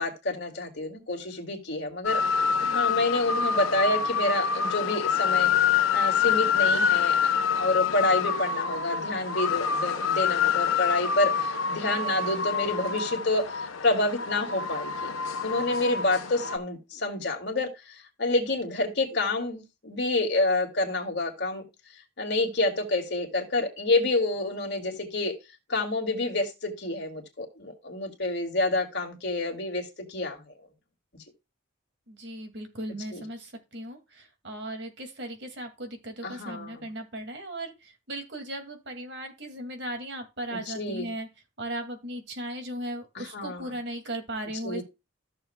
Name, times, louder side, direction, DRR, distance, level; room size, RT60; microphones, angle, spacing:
voice 1, 0.0-5.5 5.9-7.2 7.5-13.5 13.8-15.1 15.4-21.6 22.2-25.3 25.7-29.8 30.1-30.4 33.1-33.2 36.2-36.9 40.7-41.1 43.2-43.7 44.6-44.8, left 2 dB, 55° left, 2 dB, 2.4 m, -28 dB
sound 1, 2.0-16.6, left 6 dB, 90° left, 1.1 m, -26 dB
voice 2, 2.6-3.0 32.1-41.3 41.6-44.8, right 1 dB, 55° right, 5 dB, 2.2 m, -37 dB
14.5 x 6.9 x 2.2 m, 0.25 s
head